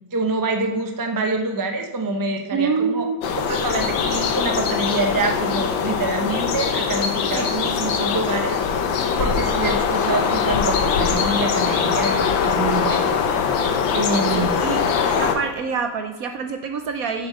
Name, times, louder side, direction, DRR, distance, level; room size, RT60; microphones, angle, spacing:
voice 1, 0.1-3.1 3.5-8.6 9.2-13.1 13.9-14.7, right 3 dB, 30° right, 4 dB, 0.4 m, -26 dB
voice 2, 2.5-3.2 7.4-7.5 14.3-14.8 15.2-17.3, right 5 dB, 65° right, 6 dB, 0.9 m, -26 dB
sound 1, 3.2-15.4, left 6 dB, 85° left, 1.6 m, -22 dB
7.5 x 7.0 x 6.4 m, 1.2 s
omnidirectional pair, 2.0 m